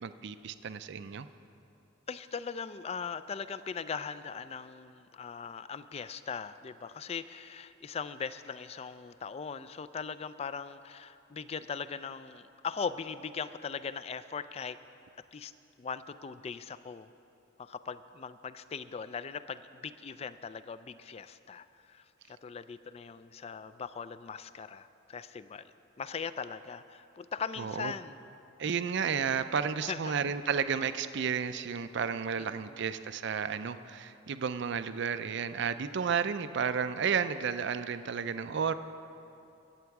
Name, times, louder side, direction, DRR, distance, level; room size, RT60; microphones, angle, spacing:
voice 1, 0.0-1.3 27.6-27.9 28.6-38.7, right 6 dB, 60° right, 12 dB, 0.4 m, -32 dB
voice 2, 2.1-14.8 15.3-15.5 15.8-17.1 17.6-25.6 26.0-28.2 29.8-30.2 32.4-32.8, left 6 dB, 30° left, 13 dB, 0.3 m, -40 dB
22.0 x 8.0 x 4.7 m, 2.7 s
head